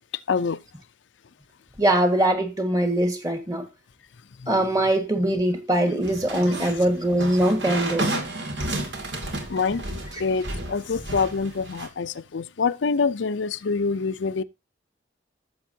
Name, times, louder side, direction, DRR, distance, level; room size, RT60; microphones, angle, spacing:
voice 1, 0.3-0.6 4.4-4.5 9.5-14.4, left 5 dB, 85° left, 0.6 m, -26 dB
voice 2, 1.8-3.7 4.5-8.1, right 1 dB, 20° right, 1.6 m, -22 dB
sound 1, 6.0-11.9, right 2 dB, 75° right, 2.3 m, -32 dB
14.5 x 7.1 x 2.8 m
head